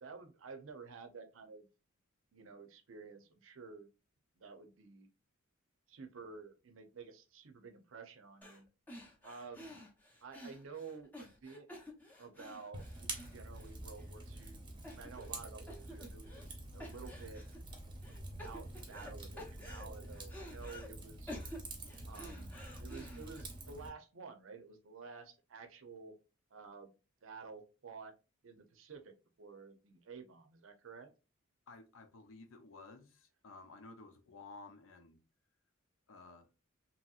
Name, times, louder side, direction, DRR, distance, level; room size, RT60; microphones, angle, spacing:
voice 1, 0.0-1.7 2.3-3.9 4.4-5.1 5.9-8.7 9.2-9.8 10.2-11.7 12.2-16.4 16.7-17.4 18.1-21.4 22.1-26.2 26.5-26.9 27.2-28.1 28.4-29.1 29.4-31.1, right 4 dB, 70° right, 0.6 m, -51 dB
sound 1, 8.4-8.6 8.9-14.0 14.4-14.5 14.8-15.4 15.7-16.5 16.8-17.6 18.0-19.1 19.4-20.9 21.3-23.4, equal, 10° left, 0.6 m, -51 dB
Fire, 12.7-23.9, right 2 dB, 25° right, 0.7 m, -47 dB
voice 2, 31.7-35.2 36.1-36.5, left 3 dB, 70° left, 0.6 m, -54 dB
2.9 x 2.8 x 2.3 m
head